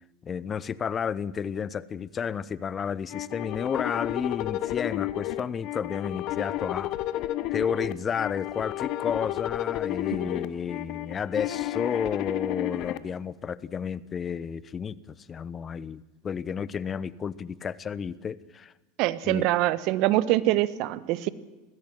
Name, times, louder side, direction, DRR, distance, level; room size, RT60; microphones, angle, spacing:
voice 1, 0.2-6.9 7.5-18.7 19.2-19.5, left 7 dB, 30° left, 19 dB, 0.8 m, -32 dB
sound 1, 3.1-13.0, left 15 dB, 55° left, 1.1 m, -32 dB
voice 2, 19.0-21.3, right 16 dB, 55° right, 17 dB, 1.1 m, -24 dB
21.0 x 15.5 x 9.1 m, 1.2 s
hypercardioid pair, 85°, 0 cm